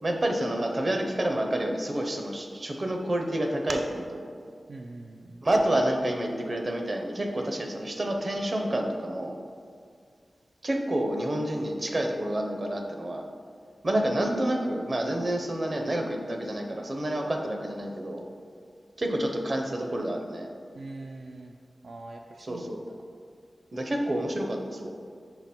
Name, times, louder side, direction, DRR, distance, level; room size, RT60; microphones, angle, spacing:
voice 1, 0.0-4.2 5.4-9.4 10.6-13.2 13.8-18.3 19.0-20.5 22.4-22.8 23.7-24.9, right 1 dB, 45° right, 3 dB, 0.7 m, -28 dB
voice 2, 4.7-5.4 20.7-21.5 21.8-23.0, right 2 dB, 80° right, 2 dB, 0.3 m, -43 dB
5.8 x 3.9 x 4.3 m, 2.1 s
cardioid pair, 55°, 0 cm